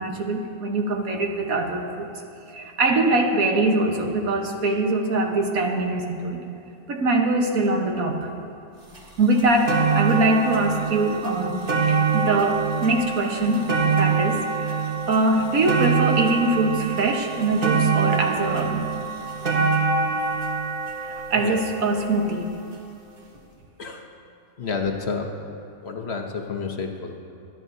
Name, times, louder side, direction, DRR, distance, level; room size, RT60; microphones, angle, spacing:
voice 1, 0.0-2.1 2.5-6.4 6.9-8.3 9.2-14.8 15.1-18.9 19.5-19.6 21.0-22.5, right 2 dB, 75° right, 2 dB, 1.6 m, -23 dB
sound 1, 8.9-9.0 9.4-22.6 23.3-23.4, right 5 dB, 40° right, 1.4 m, -25 dB
voice 2, 24.6-25.3 25.8-27.2, left 5 dB, 55° left, 2 dB, 1.0 m, -29 dB
25.5 x 10.5 x 2.7 m, 2.7 s
omnidirectional pair, 1.5 m